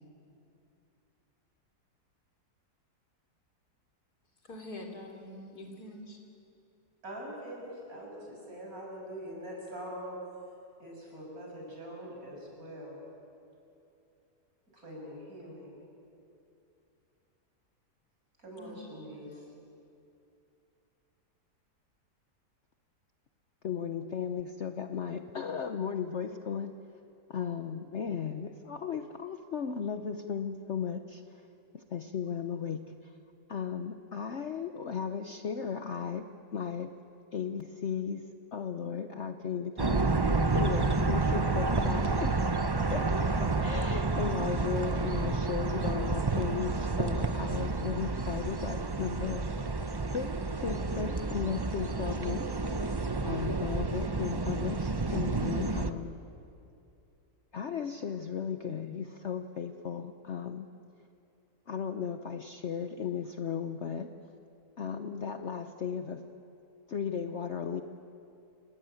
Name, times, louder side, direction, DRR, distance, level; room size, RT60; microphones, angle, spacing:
voice 1, 4.4-6.2 18.6-18.9, left 1 dB, 65° left, 2 dB, 3.8 m, -45 dB
voice 2, 7.0-10.1 10.8-13.0 14.7-15.8 18.4-19.4, equal, 60° right, -2 dB, 7.3 m, -43 dB
voice 3, 23.6-26.8 27.3-31.2 31.7-33.1 33.5-36.9 37.3-40.0 40.5-49.4 50.1-52.5 53.2-56.2 57.5-60.7 61.7-64.1 64.8-66.2 66.9-67.8, left 7 dB, 50° left, 8 dB, 1.0 m, -36 dB
sound 1, 39.8-55.9, right 3 dB, 30° right, 0.4 m, -30 dB
29.0 x 18.5 x 9.0 m, 2.6 s
omnidirectional pair, 1.7 m